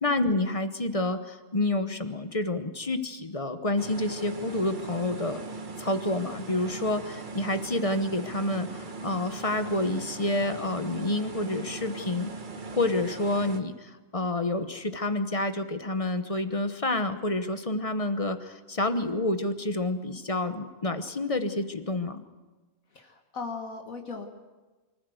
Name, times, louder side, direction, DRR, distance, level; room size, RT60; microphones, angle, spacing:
voice 1, 0.0-5.4 5.8-12.3 12.7-22.2, left 2 dB, 25° left, 9 dB, 1.0 m, -29 dB
sound 1, 3.8-13.6, right 3 dB, 35° right, 1.4 m, -39 dB
voice 2, 22.9-24.3, left 4 dB, 75° left, 3 dB, 2.0 m, -38 dB
25.0 x 15.0 x 7.9 m, 1.2 s
omnidirectional pair, 1.5 m